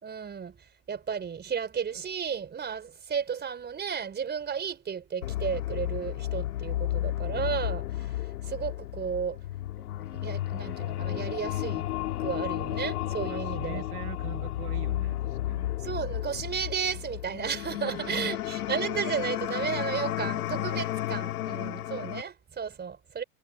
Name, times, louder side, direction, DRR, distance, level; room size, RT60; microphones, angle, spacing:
voice 1, 0.0-0.6 0.9-8.1 8.4-9.4 10.1-11.8 12.2-13.8 15.8-23.2, right 7 dB, 20° right, 4.1 m, -33 dB
sound 1, 5.2-22.2, left 14 dB, 80° left, 2.4 m, -32 dB
voice 2, 13.3-15.7 17.8-18.4, right 14 dB, 75° right, 2.4 m, -42 dB
hypercardioid pair, 105°, 45 cm